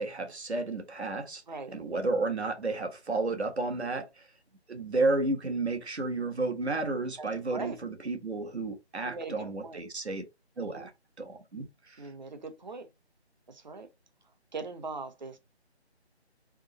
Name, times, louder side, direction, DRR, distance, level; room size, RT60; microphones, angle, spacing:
voice 1, 0.0-1.4 1.7-4.2 4.7-10.2 10.6-10.9 11.2-12.0, right 3 dB, 70° right, 1.4 m, -32 dB
voice 2, 7.2-7.8 9.0-9.3 9.6-9.8 10.6-10.9 12.0-12.9 13.5-13.9 14.5-15.4, right 3 dB, 40° right, 0.8 m, -40 dB
3.7 x 3.0 x 4.0 m
figure-of-eight pair, 160°, 34 cm